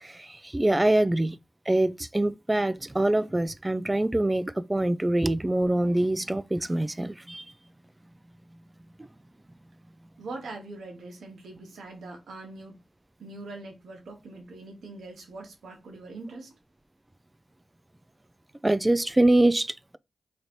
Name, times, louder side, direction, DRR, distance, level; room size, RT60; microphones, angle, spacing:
voice 1, 0.0-1.4 1.7-7.4 18.6-20.0, right 1 dB, 20° right, 0.4 m, -24 dB
voice 2, 10.2-12.8 13.2-16.5, right 2 dB, 80° right, 1.0 m, -42 dB
3.1 x 2.6 x 4.3 m
cardioid pair, 45°, 0 cm